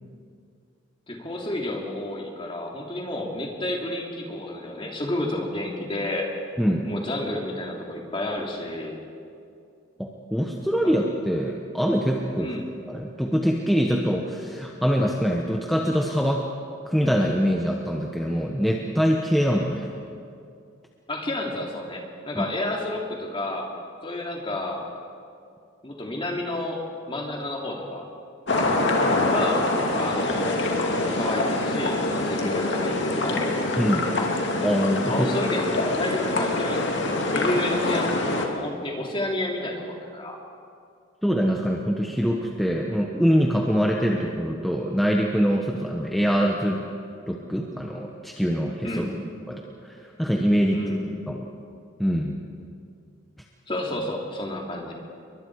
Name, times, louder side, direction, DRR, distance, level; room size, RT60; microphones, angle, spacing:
voice 1, 1.1-6.3 6.8-8.9 12.4-12.7 21.1-23.7 24.0-24.9 25.8-26.8 27.1-28.1 29.3-29.7 29.9-30.6 31.1-33.5 35.1-40.4 48.8-49.2 50.7-51.0 53.7-54.9, left 1 dB, 25° left, -1 dB, 3.0 m, -30 dB
voice 2, 10.0-12.5 12.9-16.4 16.8-19.9 22.3-22.5 33.8-34.1 34.6-35.3 41.2-46.8 47.3-49.1 49.5-50.8 51.3-51.4 52.0-52.3, equal, ahead, -1 dB, 1.2 m, -24 dB
sound 1, 28.5-38.5, left 2 dB, 60° left, 2.5 m, -25 dB
29.0 x 23.5 x 4.9 m, 2.4 s
head